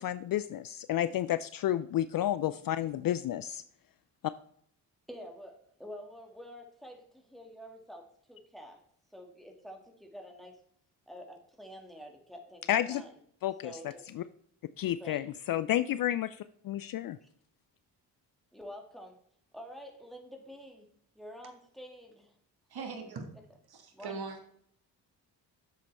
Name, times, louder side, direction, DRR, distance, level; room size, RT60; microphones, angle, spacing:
voice 1, 0.0-3.6 4.2-4.3 12.7-13.0 13.4-13.7 14.1-14.2 14.8-17.2, left 12 dB, 50° left, 15 dB, 0.5 m, -31 dB
voice 2, 5.1-8.0 8.3-8.8 9.1-10.6 11.1-13.2 13.6-14.0 15.0-15.2 17.2-17.3 18.5-19.2 19.5-20.9 21.2-22.3 22.8-22.9 23.9-24.2, equal, ahead, 2 dB, 2.2 m, -48 dB
voice 3, 22.7-23.2 23.7-24.4, right 4 dB, 50° right, 5 dB, 1.9 m, -40 dB
7.4 x 7.3 x 3.4 m, 0.65 s
hypercardioid pair, 45°, 47 cm